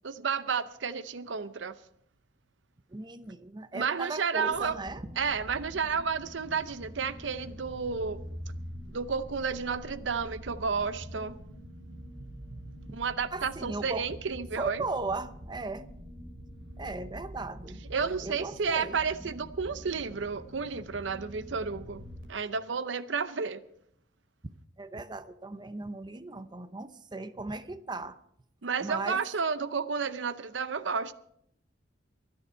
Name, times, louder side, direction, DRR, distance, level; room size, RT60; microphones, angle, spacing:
voice 1, 0.0-1.7 3.7-4.8 5.2-8.2 8.9-11.4 12.9-14.8 17.9-22.0 22.3-23.6 28.6-31.1, right 5 dB, 90° right, 0.7 m, -31 dB
voice 2, 2.9-5.1 12.9-13.0 13.3-14.1 14.6-15.9 16.8-17.8 18.2-19.0 24.8-28.2 28.8-29.2, right 3 dB, 25° right, 0.7 m, -37 dB
sound 1, 4.5-22.2, equal, 55° right, 4.6 m, -45 dB
23.5 x 9.6 x 4.4 m
head